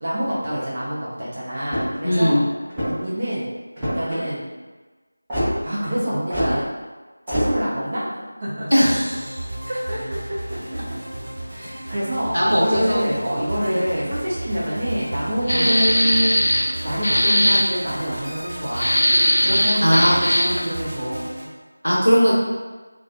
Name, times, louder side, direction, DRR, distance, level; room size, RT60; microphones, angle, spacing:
voice 1, 0.0-2.4 2.8-3.5 3.8-4.5 5.6-6.6 7.3-8.1 8.4-8.7 9.7-10.0 10.7-10.8 11.5-16.4 16.8-19.0 19.4-21.2, equal, 25° right, -8 dB, 0.5 m, -26 dB
sound 1, 1.6-2.1 2.7-3.1 3.8-4.2 5.3-5.5 6.3-6.5 7.3-7.5, equal, 10° right, 0.9 m, -24 dB
voice 2, 2.0-2.4 8.7-9.4 12.3-13.0 13.7-13.8 15.5-15.7 19.8-20.1 21.8-22.3, equal, 90° right, -6 dB, 0.9 m, -18 dB
sound 2, 8.9-21.5, right 1 dB, 45° right, 1.2 m, -33 dB
sound 3, 15.5-16.7 17.0-17.6 18.7-20.6, equal, 55° left, 0.4 m, -19 dB
2.3 x 2.3 x 2.4 m, 1.3 s
figure-of-eight pair, 170°, 0 cm